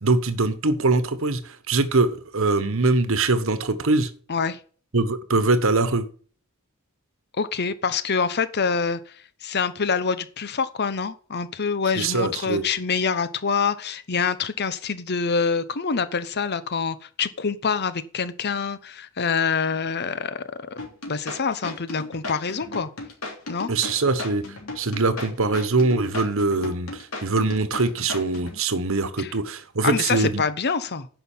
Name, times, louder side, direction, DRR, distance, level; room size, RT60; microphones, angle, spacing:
voice 1, 0.0-4.1 4.9-6.1 12.0-12.6 23.7-24.4 24.8-30.4, right 3 dB, 65° right, 12 dB, 1.2 m, -22 dB
voice 2, 4.3-4.6 7.3-20.4 21.1-22.9 23.5-23.7 29.2-29.3 29.8-31.1, left 5 dB, 50° left, 14 dB, 0.9 m, -26 dB
sound 1, 20.8-28.6, left 3 dB, 75° left, 3.3 m, -35 dB
10.0 x 5.7 x 7.3 m, 0.42 s
head